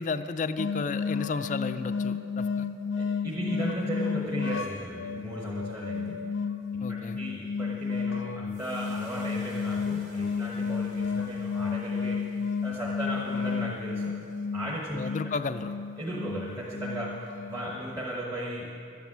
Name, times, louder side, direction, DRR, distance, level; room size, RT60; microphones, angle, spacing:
voice 1, 0.0-2.7 6.8-7.2 14.9-15.7, left 4 dB, 40° left, 10 dB, 0.4 m, -32 dB
sound 1, 0.6-18.2, left 5 dB, 85° left, 0.6 m, -32 dB
voice 2, 2.9-6.3 6.7-12.3 12.6-14.2 14.5-15.0 16.0-18.7, right 1 dB, 20° right, -5 dB, 1.2 m, -36 dB
sound 2, 8.5-14.8, right 1 dB, 70° right, 3.0 m, -55 dB
12.5 x 10.5 x 7.3 m, 2.5 s
head